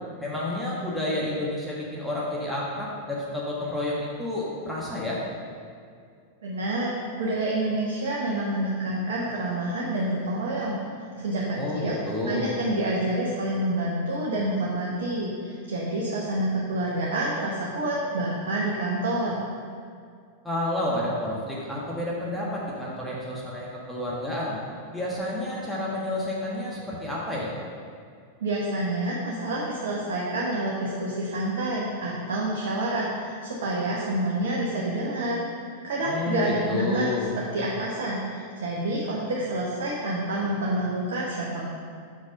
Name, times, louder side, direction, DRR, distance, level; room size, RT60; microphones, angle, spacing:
voice 1, 0.2-5.2 11.5-12.5 20.4-24.6 24.9-27.5 36.0-37.3, left 1 dB, ahead, -6 dB, 1.3 m, -30 dB
voice 2, 6.4-6.9 7.2-10.7 11.2-12.0 12.3-19.4 28.4-35.4 35.8-41.7, right 1 dB, 60° right, -4 dB, 1.0 m, -28 dB
5.9 x 5.2 x 5.4 m, 2.3 s
figure-of-eight pair, 90°, 0 cm